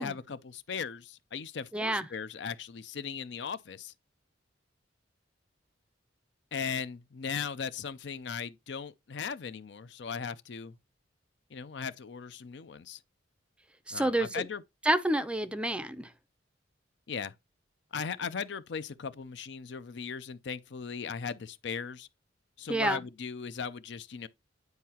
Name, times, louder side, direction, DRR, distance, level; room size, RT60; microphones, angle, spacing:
voice 1, 0.0-3.9 6.5-10.8 11.5-13.0 13.9-14.6 17.1-17.3 17.9-22.1 22.6-24.3, left 6 dB, 65° left, 0.5 m, -38 dB
voice 2, 1.7-2.0 13.9-14.4 14.9-16.1 22.7-23.0, right 1 dB, 5° right, 0.5 m, -28 dB
9.5 x 4.6 x 2.8 m
head